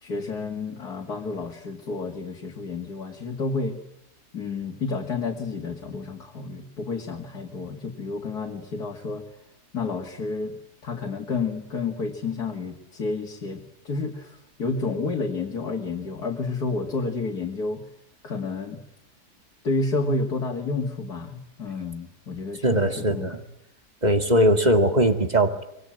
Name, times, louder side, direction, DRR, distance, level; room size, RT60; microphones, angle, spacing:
voice 1, 0.0-3.8 4.3-9.2 9.7-10.6 10.8-17.8 18.2-18.8 19.6-23.4, left 3 dB, 70° left, 1 dB, 2.9 m, -30 dB
voice 2, 22.6-23.4 24.0-25.6, right 1 dB, 25° right, 7 dB, 2.2 m, -20 dB
25.0 x 22.0 x 8.8 m, 0.83 s
omnidirectional pair, 1.8 m